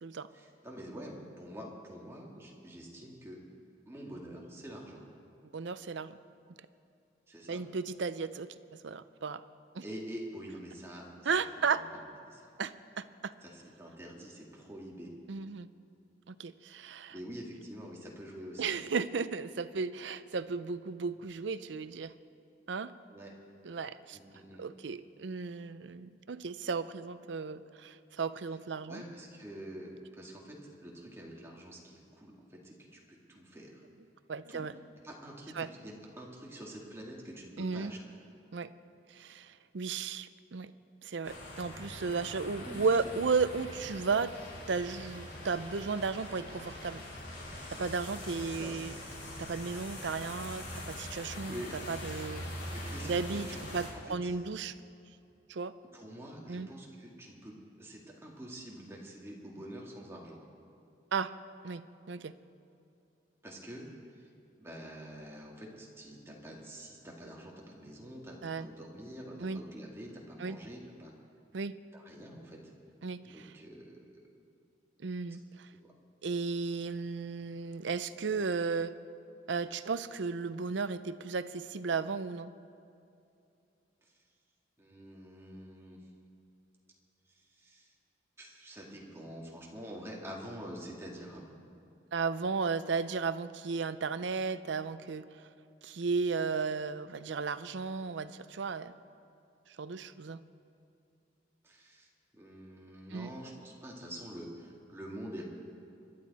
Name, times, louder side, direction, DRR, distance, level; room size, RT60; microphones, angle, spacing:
voice 1, 0.3-3.4 3.9-5.0 7.3-7.6 9.8-11.5 11.8-11.9 12.2-12.5 13.4-15.1 17.1-18.8 23.1-23.3 24.1-24.6 28.9-33.8 34.5-34.7 35.0-38.0 42.6-42.8 48.4-48.7 51.5-51.7 52.7-53.4 53.7-53.8 54.1-54.3 55.9-60.4 63.4-63.9 64.6-71.1 71.9-72.6 73.2-74.0 75.8-75.9 84.8-86.0 87.6-87.9 88.4-91.6 101.6-102.1 102.3-105.4, equal, 15° right, -2 dB, 2.0 m, -46 dB
voice 2, 5.5-6.2 7.5-8.5 8.8-9.4 9.7-9.8 11.2-11.8 12.6-13.3 15.3-15.7 16.3-17.1 18.6-22.1 22.7-22.9 23.6-24.2 24.6-29.0 34.3-34.7 35.6-35.7 37.6-37.9 38.5-38.7 39.1-40.7 41.0-44.3 44.7-47.0 47.8-48.9 49.4-51.6 51.9-52.5 53.0-53.5 53.7-54.7 55.5-55.7 56.5-56.7 61.1-61.3 61.6-62.3 68.4-68.7 69.4-69.6 70.4-70.6 71.5-71.7 73.0-73.5 75.0-75.7 76.2-78.9 79.5-82.5 92.1-95.3 95.8-98.9 99.8-100.4 103.1-103.3, right 4 dB, 75° right, 13 dB, 0.6 m, -34 dB
sound 1, 41.2-53.9, left 1 dB, 70° left, 4.2 m, -43 dB
25.5 x 11.5 x 4.2 m, 2.6 s
head